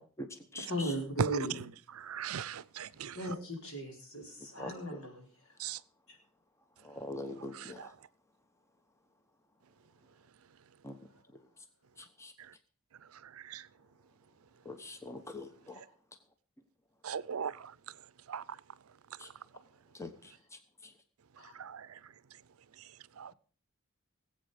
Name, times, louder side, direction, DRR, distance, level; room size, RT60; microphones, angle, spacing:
voice 1, 0.6-1.7 3.1-5.3 6.1-6.2 7.6-7.8 21.4-21.5, right 1 dB, 75° left, 4.5 m, -37 dB
voice 2, 2.0-3.2 5.6-5.8 7.5-7.9 13.5-13.6 17.0-17.7 18.3-18.4 21.6-21.9 23.2-23.3, right 8 dB, 85° right, 0.5 m, -40 dB
voice 3, 6.8-7.9 10.8-11.0 12.2-12.3 14.6-15.8 19.2-19.3 20.0-20.1, left 1 dB, 15° left, 1.1 m, -42 dB
19.0 x 8.2 x 5.1 m
head